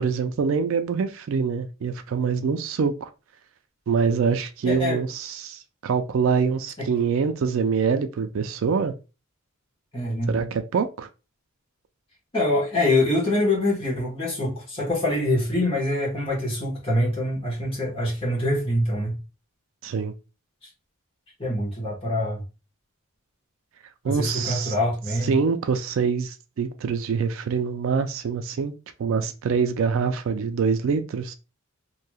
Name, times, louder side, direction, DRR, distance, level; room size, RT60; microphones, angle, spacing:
voice 1, 0.0-3.1 3.9-8.9 10.3-11.1 19.8-20.1 24.0-24.7 25.2-28.7 29.0-31.3, right 5 dB, 65° right, 0.3 m, -25 dB
voice 2, 4.6-5.0 6.8-6.9 9.9-10.3 12.3-19.1 21.4-22.4 24.0-25.3, left 1 dB, 25° left, 1.2 m, -24 dB
3.0 x 2.7 x 2.2 m
head